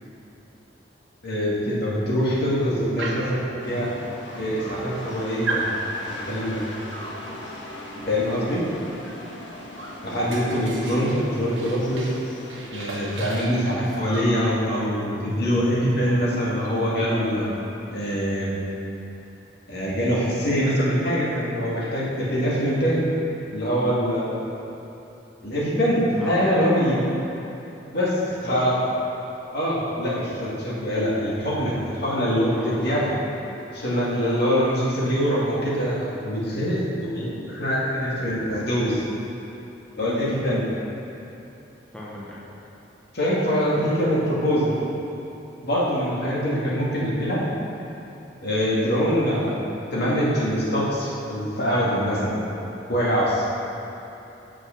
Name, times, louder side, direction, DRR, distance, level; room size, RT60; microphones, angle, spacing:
voice 1, 1.2-3.9 4.3-5.7 6.2-6.6 8.1-8.6 10.0-12.1 12.7-17.5 17.9-18.5 19.7-23.1 23.5-24.3 25.4-27.0 27.9-28.8 29.5-33.0 33.7-39.1 40.0-40.7 43.1-44.7 45.6-47.4 48.4-49.6 49.9-52.4 52.9-53.5, equal, 60° left, -6 dB, 2.1 m, -24 dB
Dog, 3.0-3.4 4.2-4.3 4.6-5.1 5.4-5.8 6.9-7.2 9.0-9.2 9.5-12.2 12.5-14.3 15.6-15.7 16.0-16.2 16.5-17.8, right 2 dB, 90° right, 1.2 m, -34 dB
sound 1, 3.6-12.7, left 1 dB, 90° left, 1.3 m, -39 dB
voice 2, 26.2-27.1 28.4-28.9 32.5-33.6 41.9-42.4 43.7-44.0, left 1 dB, 5° left, -7 dB, 1.0 m, -38 dB
7.8 x 6.2 x 5.8 m, 2.9 s
head